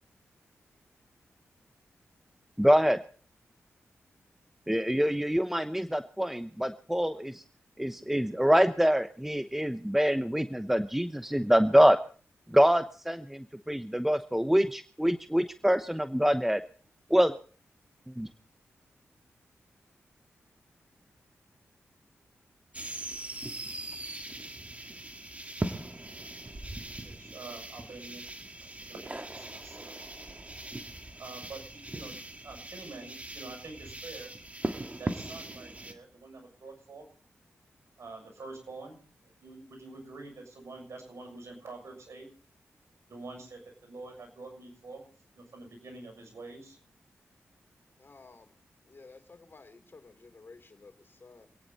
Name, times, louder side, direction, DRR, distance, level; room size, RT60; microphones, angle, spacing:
voice 1, 2.6-3.0 4.7-7.4 7.8-12.0 12.5-16.6 17.1-17.3 18.1-18.3, equal, 5° right, 10 dB, 0.9 m, -25 dB
sound 1, 22.7-35.9, right 2 dB, 25° right, 2.0 m, -40 dB
voice 2, 27.0-28.3 28.6-29.9 31.2-32.1 32.4-34.3 35.0-37.0 38.0-39.0 39.4-42.3 43.1-45.0 45.3-46.8, right 3 dB, 65° right, 3 dB, 6.9 m, -46 dB
voice 3, 48.0-48.5 48.9-51.5, left 3 dB, 45° left, 8 dB, 3.1 m, -53 dB
26.0 x 9.8 x 4.1 m, 0.42 s
cardioid pair, 45°, 5 cm